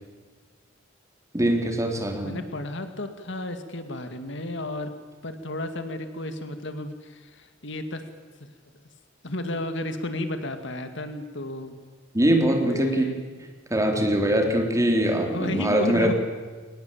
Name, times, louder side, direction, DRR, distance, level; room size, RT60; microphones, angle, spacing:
voice 1, 1.3-2.4 12.1-13.1 13.7-16.1, right 1 dB, 15° right, 3 dB, 3.7 m, -22 dB
voice 2, 2.2-4.9 5.2-8.0 9.2-11.7 12.7-13.4 15.3-16.1, left 1 dB, 65° left, 8 dB, 2.3 m, -32 dB
23.0 x 19.5 x 8.8 m, 1.4 s
head